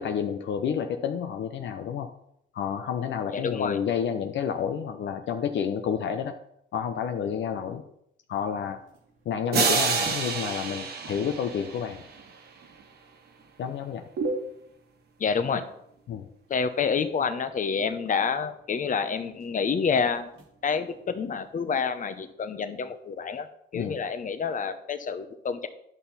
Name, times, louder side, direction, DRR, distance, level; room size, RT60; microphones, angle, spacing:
voice 1, 0.0-2.1 2.5-6.3 6.7-7.8 8.3-8.8 9.3-12.0 13.6-14.1 16.1-16.3 23.7-24.0, left 7 dB, 65° left, 6 dB, 0.7 m, -30 dB
voice 2, 3.3-3.8 15.2-15.7 16.5-20.3 20.6-23.5 23.7-25.7, left 6 dB, 40° left, 10 dB, 0.9 m, -28 dB
sound 1, 8.5-22.2, right 3 dB, 85° right, 2.1 m, -43 dB
sound 2, 9.5-12.4, right 5 dB, 55° right, 1.3 m, -28 dB
11.0 x 5.9 x 4.2 m, 0.74 s
cardioid pair, 90°, 20 cm